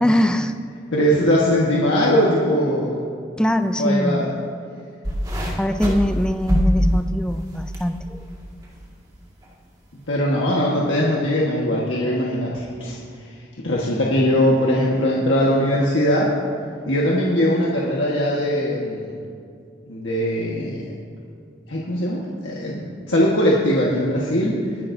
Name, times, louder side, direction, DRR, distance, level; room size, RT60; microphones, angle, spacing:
voice 1, 0.0-0.5 3.4-4.3 4.8-4.9 5.6-8.2, left 1 dB, 5° left, 8 dB, 0.4 m, -22 dB
voice 2, 0.9-3.0 3.8-4.3 10.1-13.0 13.6-16.3 16.9-19.1 19.9-20.8 21.7-24.5, equal, 90° left, -4 dB, 1.5 m, -20 dB
sound 1, 5.0-7.9 8.2-8.7 9.4-9.5, equal, 20° right, 2.0 m, -23 dB
21.0 x 11.0 x 2.7 m, 2.4 s
head